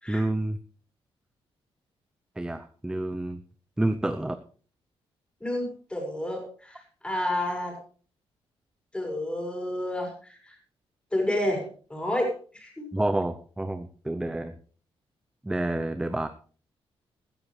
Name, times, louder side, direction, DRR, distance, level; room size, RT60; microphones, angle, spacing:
voice 1, 0.1-0.6 2.4-3.4 3.8-4.4 12.9-14.5 15.4-16.3, right 1 dB, 5° right, 9 dB, 0.7 m, -28 dB
voice 2, 5.4-7.8 8.9-10.6 11.1-12.9, left 1 dB, 10° left, 1 dB, 5.6 m, -30 dB
16.0 x 14.0 x 3.3 m, 0.41 s
wide cardioid pair, 150°, 10 cm